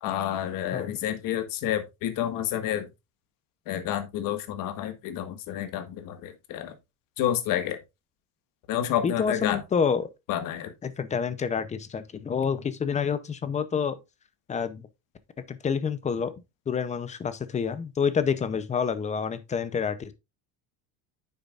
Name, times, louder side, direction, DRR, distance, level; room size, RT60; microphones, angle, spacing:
voice 1, 0.0-2.9 3.7-6.7 7.2-7.8 8.7-9.6 10.3-10.7, left 11 dB, 50° left, 1.6 m, -29 dB
voice 2, 9.0-10.1 10.8-14.0 14.5-14.9 15.5-16.3 16.7-20.1, left 6 dB, 15° left, 0.6 m, -28 dB
9.4 x 7.1 x 2.4 m
cardioid pair, 160°, 42 cm